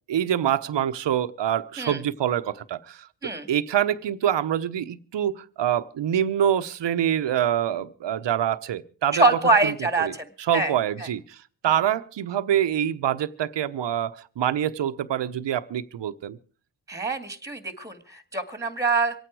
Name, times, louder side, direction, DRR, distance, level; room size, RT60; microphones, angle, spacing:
voice 1, 0.1-3.1 3.5-9.2 9.6-9.7 10.0-11.4 11.6-16.4, right 10 dB, 70° right, 1.0 m, -25 dB
voice 2, 9.1-10.7 11.0-11.1 16.9-19.2, right 3 dB, 5° right, 2.1 m, -24 dB
25.0 x 9.2 x 4.8 m
cardioid pair, 75°, 45 cm